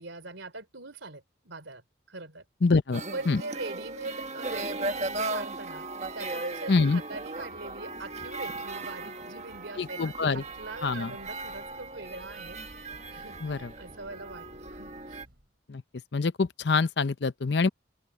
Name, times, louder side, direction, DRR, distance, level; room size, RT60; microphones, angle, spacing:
voice 1, 0.0-2.5 3.1-5.9 6.1-15.2, right 2 dB, 85° right, 3.6 m, -42 dB
voice 2, 2.6-3.4 6.7-7.0 9.8-10.4 10.8-11.1 13.4-13.7 15.7-15.8 16.1-17.7, left 4 dB, 65° left, 0.6 m, -25 dB
sound 1, 2.9-15.2, right 2 dB, 35° right, 1.5 m, -37 dB
Breathing / Train, 10.0-15.6, equal, 55° right, 7.6 m, -56 dB
head